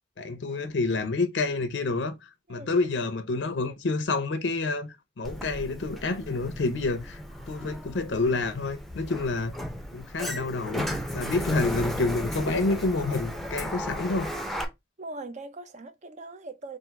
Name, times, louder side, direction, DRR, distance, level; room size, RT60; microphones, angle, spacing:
voice 1, 0.2-7.2 7.5-9.5 9.9-14.3, left 3 dB, 75° left, 0.6 m, -28 dB
Sliding door, 5.2-14.6, equal, ahead, 0.6 m, -35 dB
voice 2, 15.0-16.8, right 2 dB, 40° right, 0.6 m, -40 dB
3.6 x 2.5 x 4.4 m
head